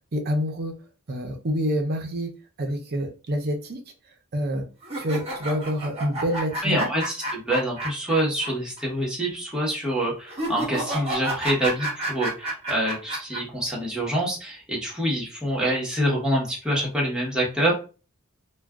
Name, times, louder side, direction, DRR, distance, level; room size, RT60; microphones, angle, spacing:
voice 1, 0.1-0.7 1.1-2.3 2.6-3.8 4.3-4.6 5.0-6.9, equal, 45° right, 3 dB, 0.6 m, -27 dB
sound 1, 4.8-8.5 8.8-8.9 10.3-13.4, right 1 dB, 25° right, 1.1 m, -30 dB
voice 2, 6.6-17.7, right 1 dB, 5° right, -5 dB, 1.0 m, -26 dB
2.4 x 2.2 x 3.5 m, 0.34 s
head